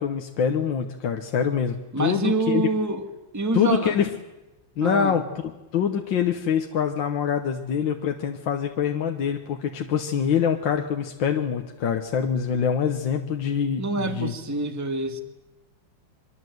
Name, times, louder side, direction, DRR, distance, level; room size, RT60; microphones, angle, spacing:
voice 1, 0.0-2.7 3.5-4.1 4.8-5.2 5.7-14.3, left 7 dB, 60° left, 4 dB, 1.8 m, -25 dB
voice 2, 1.9-4.0 4.8-5.2 13.8-15.2, right 3 dB, 10° right, 7 dB, 1.4 m, -26 dB
24.5 x 22.5 x 7.9 m, 1.1 s
omnidirectional pair, 2.4 m